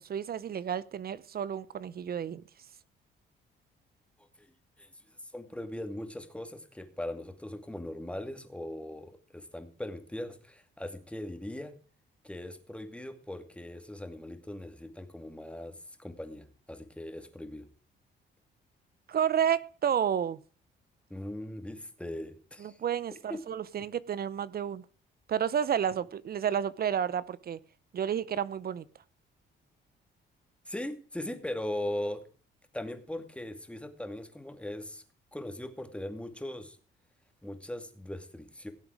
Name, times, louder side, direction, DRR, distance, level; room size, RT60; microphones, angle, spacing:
voice 1, 0.0-2.4 19.1-20.4 22.6-24.8 25.3-27.6 27.9-28.8, right 8 dB, 50° right, 18 dB, 0.8 m, -31 dB
voice 2, 5.3-11.7 12.2-17.7 21.1-22.8 23.3-23.4 30.7-32.2 32.7-35.0 35.3-36.8 37.4-38.7, left 1 dB, 5° left, 7 dB, 2.4 m, -39 dB
17.0 x 8.0 x 4.9 m, 0.40 s
cardioid pair, 90°, 20 cm